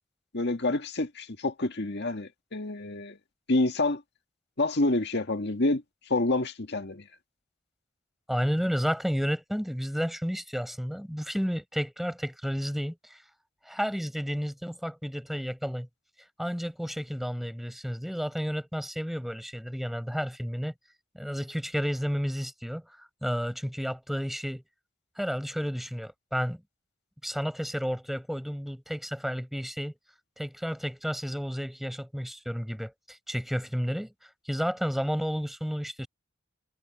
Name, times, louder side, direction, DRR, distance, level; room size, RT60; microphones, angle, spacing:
voice 1, 0.3-3.2 3.5-4.0 4.6-7.1, left 2 dB, 55° left, 1.8 m, -28 dB
voice 2, 8.3-13.2 13.6-15.9 16.4-20.7 21.1-22.8 23.2-24.6 25.2-26.6 27.2-29.9 30.4-36.1, equal, ahead, 7.7 m, -31 dB
head